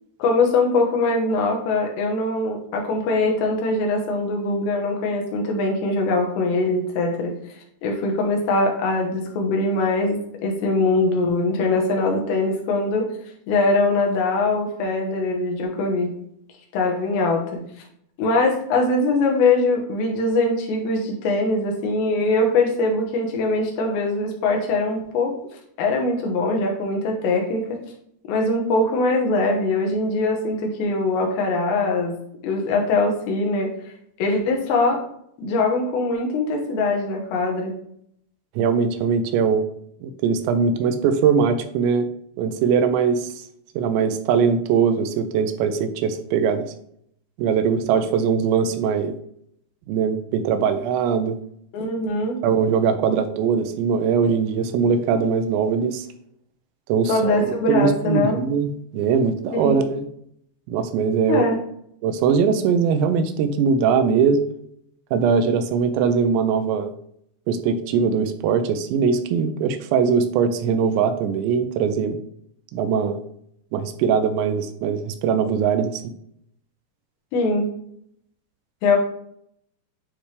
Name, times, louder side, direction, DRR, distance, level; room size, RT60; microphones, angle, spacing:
voice 1, 0.2-7.3 7.8-13.1 13.5-16.1 16.7-17.6 18.2-25.3 25.8-27.8 28.3-32.1 32.4-33.7 34.2-35.0 35.4-37.7 51.7-52.4 57.1-58.4 59.5-59.8 61.3-61.6 77.3-77.7 78.8-79.0, left 2 dB, 75° left, 1 dB, 3.3 m, -22 dB
voice 2, 38.6-39.7 40.0-42.1 42.4-43.4 43.8-46.7 47.4-49.1 49.9-51.4 52.4-56.1 56.9-60.1 60.7-61.5 62.0-64.4 65.1-66.9 67.5-72.2 72.7-73.2 73.7-76.0, right 6 dB, 85° right, 9 dB, 2.9 m, -21 dB
9.7 x 3.3 x 3.3 m, 0.70 s
omnidirectional pair, 5.1 m